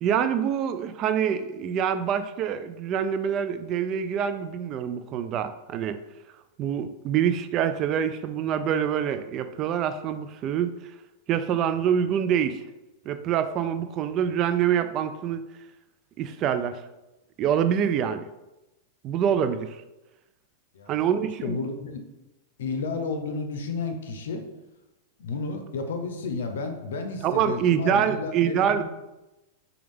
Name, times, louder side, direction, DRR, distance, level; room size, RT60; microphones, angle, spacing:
voice 1, 0.0-6.0 6.6-10.7 11.3-12.6 13.1-15.4 16.2-16.8 17.4-18.3 19.0-19.8 20.9-21.6 27.2-28.9, right 8 dB, 35° right, 10 dB, 0.3 m, -25 dB
voice 2, 20.7-22.0 22.6-24.4 25.2-28.9, left 4 dB, 85° left, 6 dB, 0.6 m, -32 dB
5.1 x 2.3 x 3.5 m, 0.99 s
hypercardioid pair, 130°, 0 cm